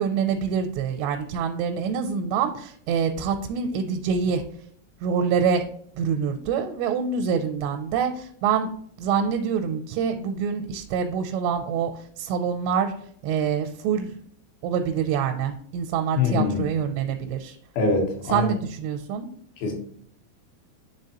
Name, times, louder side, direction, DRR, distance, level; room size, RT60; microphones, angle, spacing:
voice 1, 0.0-4.4 5.0-5.7 6.0-8.7 9.0-11.9 12.2-12.9 13.2-14.1 14.6-17.6 18.3-19.3, right 7 dB, 85° right, 5 dB, 2.8 m, -25 dB
voice 2, 16.1-16.6 17.8-18.5 19.6-19.7, left 4 dB, 70° left, 2 dB, 2.7 m, -23 dB
9.8 x 3.4 x 2.8 m, 0.63 s
omnidirectional pair, 4.9 m